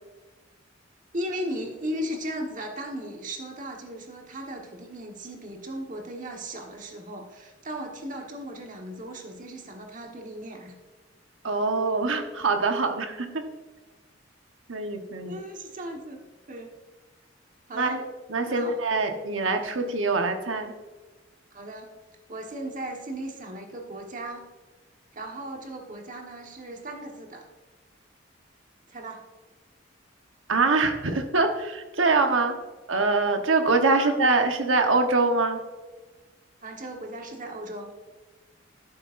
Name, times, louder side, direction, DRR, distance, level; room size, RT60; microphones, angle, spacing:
voice 1, 1.1-10.7 15.3-16.8 17.7-18.0 18.4-18.8 21.5-21.9 22.3-24.4 25.1-27.5 28.9-29.2 33.9-34.2 36.6-37.9, right 1 dB, 45° right, 2 dB, 1.4 m, -36 dB
voice 2, 11.4-13.4 14.7-15.4 17.7-18.0 18.3-20.7 30.5-32.6 32.9-35.6, right 3 dB, 90° right, 5 dB, 1.1 m, -24 dB
11.0 x 9.5 x 2.6 m, 1.2 s
head